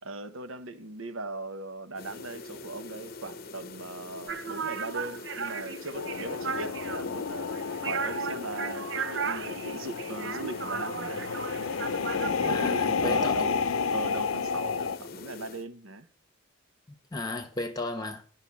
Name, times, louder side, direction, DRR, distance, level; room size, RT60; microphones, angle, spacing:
voice 1, 0.0-7.5 7.8-11.4 12.1-13.5 13.9-16.1, right 2 dB, 80° right, 1.0 m, -39 dB
sound 1, 1.9-15.7, left 3 dB, 45° left, 0.7 m, -44 dB
sound 2, 4.3-13.4, right 6 dB, 55° right, 0.6 m, -36 dB
sound 3, 5.9-15.0, left 5 dB, 80° left, 0.6 m, -31 dB
voice 2, 12.4-13.4 17.1-18.2, left 2 dB, 20° left, 1.2 m, -34 dB
11.0 x 5.9 x 7.3 m
head